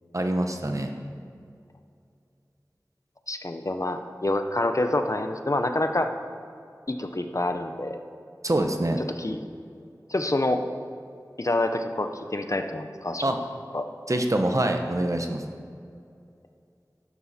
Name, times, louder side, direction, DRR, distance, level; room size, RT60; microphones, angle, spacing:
voice 1, 0.1-0.9 8.4-9.0 13.2-13.4 14.1-15.4, right 1 dB, 50° right, 4 dB, 1.0 m, -25 dB
voice 2, 3.3-6.1 6.9-8.0 9.2-9.4 10.1-10.6 11.4-13.4 13.7-13.9, left 1 dB, 50° left, 7 dB, 0.8 m, -27 dB
11.5 x 11.0 x 4.3 m, 2.4 s
wide cardioid pair, 40°, 7 cm